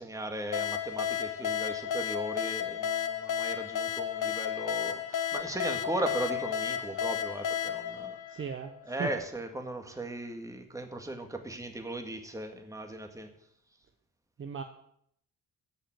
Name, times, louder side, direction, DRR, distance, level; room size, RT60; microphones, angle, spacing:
voice 1, 0.0-8.2 8.9-13.3, right 1 dB, 10° right, 5 dB, 2.0 m, -37 dB
sound 1, 0.5-9.0, left 9 dB, 65° left, 1.3 m, -33 dB
voice 2, 8.3-9.1 14.4-14.6, right 6 dB, 35° right, 6 dB, 1.1 m, -37 dB
15.0 x 5.8 x 9.0 m, 0.69 s
cardioid pair, 120°, 33 cm